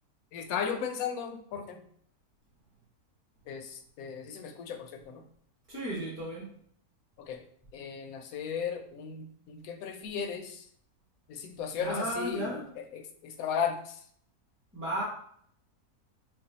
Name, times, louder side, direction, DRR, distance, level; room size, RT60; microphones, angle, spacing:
voice 1, 0.3-1.8 3.5-5.2 7.2-7.4 7.7-10.7 11.3-14.0, left 7 dB, 75° left, 6 dB, 1.0 m, -36 dB
voice 2, 5.7-6.4 11.8-12.6 14.7-15.0, right 1 dB, 10° right, -7 dB, 0.9 m, -34 dB
3.3 x 2.3 x 3.9 m, 0.62 s
omnidirectional pair, 1.6 m